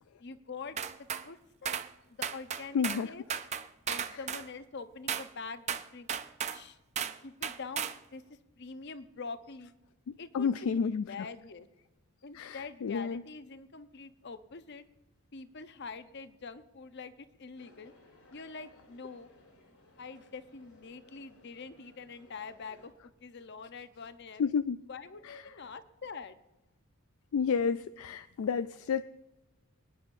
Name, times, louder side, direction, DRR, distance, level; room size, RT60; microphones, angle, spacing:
voice 1, 0.2-1.8 2.1-3.2 3.9-6.1 6.5-6.8 7.2-9.7 10.2-11.7 12.2-14.8 15.3-17.9 18.3-19.3 20.0-24.5 24.9-26.4, left 4 dB, 50° left, 11 dB, 0.8 m, -45 dB
sound 1, 0.8-1.3 1.7-1.9 2.2-3.0 3.3-4.5 5.1-5.3 5.7-6.6 7.0-7.2 7.4-8.0, right 8 dB, 30° right, 0.5 m, -35 dB
voice 2, 2.7-3.1 10.3-11.3 12.3-13.2 24.4-24.8 25.2-25.4 27.3-29.0, left 6 dB, 70° left, 12 dB, 0.3 m, -30 dB
sound 2, 17.6-22.9, left 1 dB, 90° left, 3.9 m, -60 dB
26.0 x 9.9 x 2.6 m, 1.0 s
head